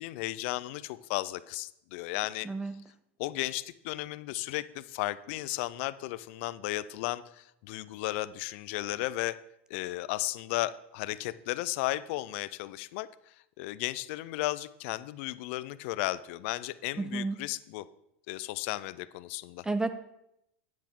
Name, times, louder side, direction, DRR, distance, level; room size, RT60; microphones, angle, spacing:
voice 1, 0.0-2.5 3.2-9.4 9.7-17.9 18.3-19.7, left 17 dB, 65° left, 17 dB, 0.4 m, -34 dB
voice 2, 2.4-2.8 17.0-17.4 19.6-19.9, right 3 dB, 10° right, 11 dB, 0.4 m, -31 dB
9.2 x 7.5 x 3.7 m, 0.82 s
supercardioid pair, 115°, 7 cm